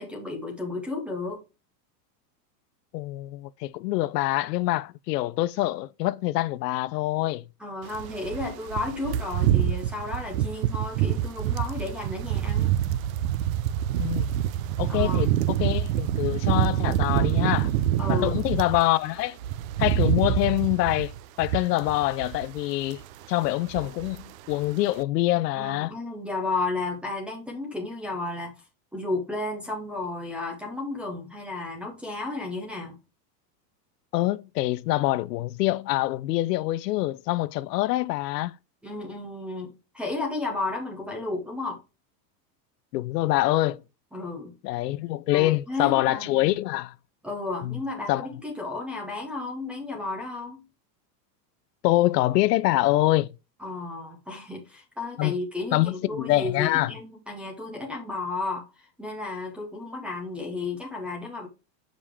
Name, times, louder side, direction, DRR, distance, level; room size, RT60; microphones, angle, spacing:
voice 1, 0.0-1.4 7.6-12.8 14.9-15.2 18.0-18.3 25.6-28.5 28.9-33.0 38.8-41.8 44.1-44.5 45.3-46.6 47.2-50.6 53.6-58.7 59.0-61.5, left 3 dB, ahead, 0.5 m, -33 dB
voice 2, 2.9-7.4 14.0-14.3 14.8-17.7 18.1-19.4 19.8-23.0 23.3-25.9 34.1-38.5 42.9-43.8 44.6-46.9 47.6-47.8 48.1-48.3 51.8-53.3 55.2-55.3 55.7-56.9, left 17 dB, 70° left, 0.6 m, -25 dB
sound 1, 7.9-18.8 19.2-22.6 22.8-23.1 23.4-24.3 24.5-24.7, right 11 dB, 55° right, 0.5 m, -26 dB
7.2 x 5.1 x 3.4 m
supercardioid pair, 170°, 50 cm